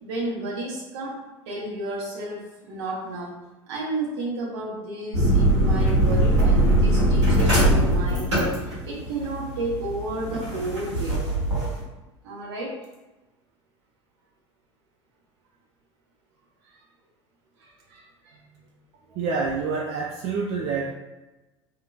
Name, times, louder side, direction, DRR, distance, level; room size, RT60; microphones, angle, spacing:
voice 1, 0.0-1.1 1.5-3.4 3.7-8.5 8.8-11.2 12.2-12.7 16.7-16.8 17.6-18.4, right 2 dB, 65° right, -4 dB, 0.9 m, -32 dB
sound 1, 5.1-11.8, right 1 dB, 85° right, 1.1 m, -21 dB
voice 2, 19.1-20.9, right 4 dB, 45° right, -2 dB, 0.4 m, -27 dB
2.8 x 2.5 x 2.3 m, 1.1 s
figure-of-eight pair, 70°, 15 cm